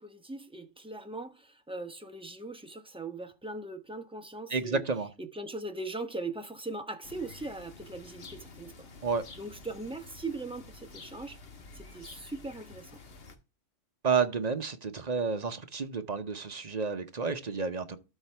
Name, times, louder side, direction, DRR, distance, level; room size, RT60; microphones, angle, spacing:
voice 1, 0.0-4.8 5.2-8.9 9.3-11.4 11.7-12.9, right 2 dB, 5° right, 0.8 m, -40 dB
voice 2, 4.5-5.1 9.0-9.2 14.0-18.0, right 5 dB, 35° right, 0.8 m, -30 dB
sound 1, 7.0-13.4, left 3 dB, 50° left, 1.4 m, -50 dB
13.0 x 4.6 x 3.4 m
omnidirectional pair, 1.4 m